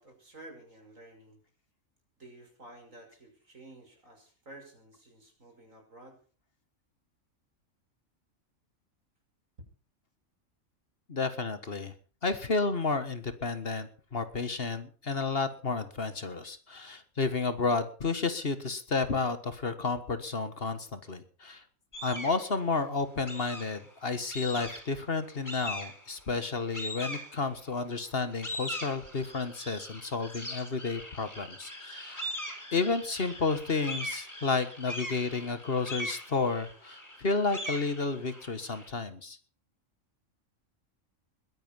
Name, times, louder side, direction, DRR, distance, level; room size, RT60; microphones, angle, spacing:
voice 1, 0.0-1.4 2.2-6.2, right 2 dB, 75° right, 3 dB, 6.3 m, -52 dB
voice 2, 11.1-11.9 12.2-21.6 22.0-32.2 32.7-39.4, left 4 dB, 45° left, 12 dB, 1.7 m, -31 dB
sound 1, 21.9-22.4 23.3-23.9 24.3-25.0 25.4-26.1 26.7-27.7 28.2-38.9, left 1 dB, 15° left, 5.0 m, -40 dB
21.0 x 10.0 x 5.6 m, 0.39 s
omnidirectional pair, 1.4 m